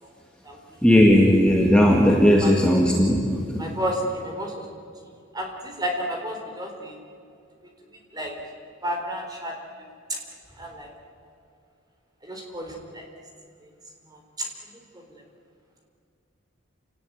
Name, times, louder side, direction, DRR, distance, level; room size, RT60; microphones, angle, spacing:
voice 1, 0.8-3.7, equal, 5° left, -1 dB, 2.0 m, -17 dB
voice 2, 3.6-4.7 5.3-6.9 8.1-8.3 8.8-9.5 10.1-10.2 10.6-10.9 12.2-13.0 14.4-14.5, equal, 20° right, 2 dB, 4.1 m, -31 dB
28.0 x 18.5 x 9.5 m, 2.4 s
head